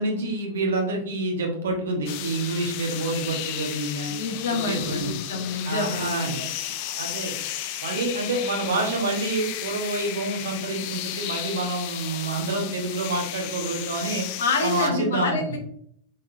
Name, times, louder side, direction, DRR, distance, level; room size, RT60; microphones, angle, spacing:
voice 1, 0.0-4.1 4.5-5.1 5.6-6.5 7.0-7.4 7.8-14.3 14.6-15.4, right 2 dB, 65° right, 2 dB, 1.2 m, -27 dB
sound 1, 2.1-14.9, left 12 dB, 45° left, 0.4 m, -34 dB
voice 2, 4.1-6.5 14.4-15.6, left 3 dB, 65° left, 4 dB, 1.0 m, -27 dB
5.3 x 3.8 x 2.7 m, 0.65 s
figure-of-eight pair, 90°, 0 cm